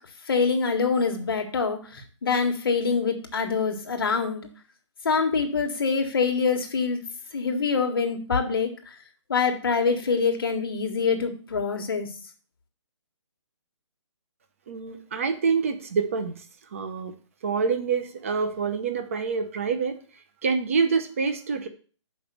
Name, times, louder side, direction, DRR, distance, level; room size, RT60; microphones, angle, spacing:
voice 1, 0.3-4.5 5.0-7.0 7.3-8.9 9.3-12.1, left 5 dB, 45° left, 3 dB, 1.5 m, -25 dB
voice 2, 14.7-16.4 16.7-17.1 17.4-20.0 20.4-21.7, right 5 dB, 25° right, 8 dB, 0.8 m, -26 dB
6.3 x 5.3 x 6.9 m, 0.40 s
hypercardioid pair, 175°, 16 cm